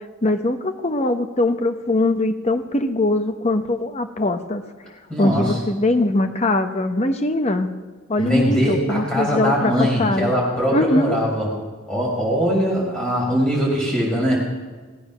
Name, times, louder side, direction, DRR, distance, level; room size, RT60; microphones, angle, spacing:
voice 1, 0.2-4.6 5.2-7.7 8.1-10.3 10.7-11.2, left 2 dB, 30° left, 7 dB, 0.8 m, -21 dB
voice 2, 5.1-5.6 8.2-11.5 11.9-14.4, equal, 5° left, -5 dB, 5.1 m, -21 dB
18.0 x 8.5 x 6.2 m, 1.4 s
head